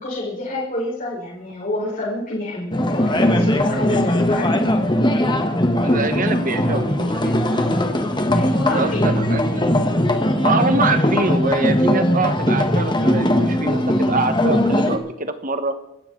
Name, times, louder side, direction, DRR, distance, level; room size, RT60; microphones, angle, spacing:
voice 1, 0.0-4.8 8.3-9.2, left 2 dB, 40° left, -6 dB, 4.8 m, -28 dB
sound 1, 2.7-15.0, left 1 dB, 20° left, 1.5 m, -19 dB
voice 2, 5.8-7.6 8.7-9.6 10.4-15.7, right 3 dB, 40° right, 8 dB, 1.5 m, -24 dB
26.0 x 13.0 x 4.0 m, 0.84 s
head